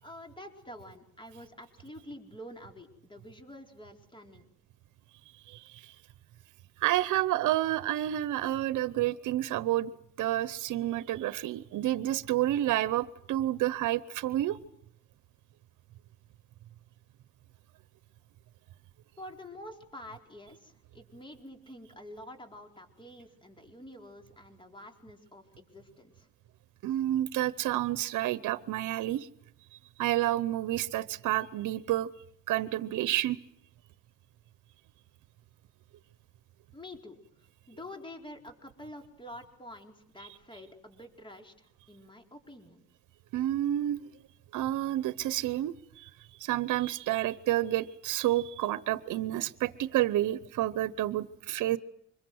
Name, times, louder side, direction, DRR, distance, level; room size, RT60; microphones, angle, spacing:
voice 1, 0.0-4.5 19.2-26.3 36.7-42.9, left 1 dB, 15° left, 4 dB, 4.6 m, -48 dB
voice 2, 5.4-6.0 6.8-9.9 10.2-14.6 26.8-29.3 30.0-32.1 32.5-33.4 43.3-44.0 44.5-46.1 46.4-51.8, right 14 dB, 80° right, 15 dB, 0.9 m, -29 dB
25.5 x 22.5 x 7.9 m, 0.74 s
cardioid pair, 90°, 30 cm